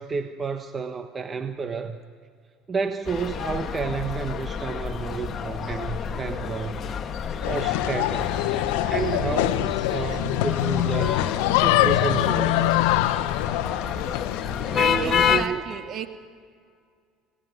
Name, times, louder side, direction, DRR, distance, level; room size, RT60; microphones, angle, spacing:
voice 1, 0.0-2.0 2.7-6.8 7.5-8.5 8.8-11.2 11.5-13.0 14.7-15.6, right 5 dB, 30° right, 7 dB, 1.3 m, -30 dB
sound 1, 3.0-15.5, left 7 dB, 40° left, 1.6 m, -29 dB
sound 2, 7.4-15.3, left 16 dB, 85° left, 0.9 m, -24 dB
voice 2, 14.6-16.1, right 8 dB, 50° right, 6 dB, 2.2 m, -35 dB
27.5 x 18.5 x 9.6 m, 2.1 s
supercardioid pair, 95°, 0 cm